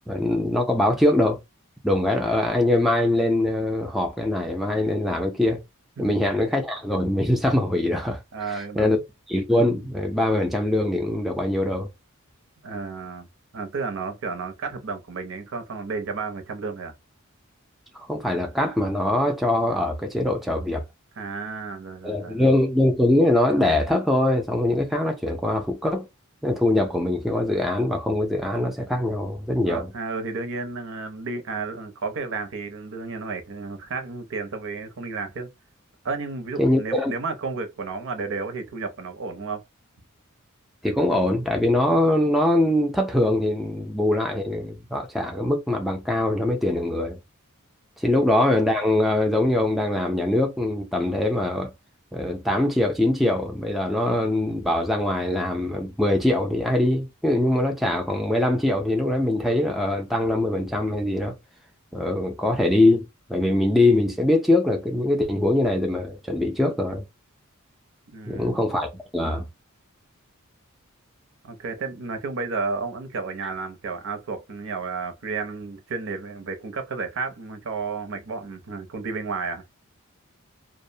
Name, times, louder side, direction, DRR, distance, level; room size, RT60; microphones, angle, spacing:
voice 1, 0.1-1.4 1.8-5.6 6.0-8.2 8.5-9.0 9.3-11.9 17.9-20.8 22.0-26.1 26.4-29.9 36.6-37.1 40.8-47.2 48.0-51.7 52.1-61.4 61.9-67.0 68.3-69.4, left 1 dB, ahead, 0.4 m, -22 dB
voice 2, 8.3-9.0 12.6-13.3 13.5-16.9 21.2-22.5 29.6-35.5 36.0-39.6 68.1-68.6 71.4-79.6, right 4 dB, 65° right, 0.6 m, -32 dB
2.5 x 2.1 x 2.6 m
head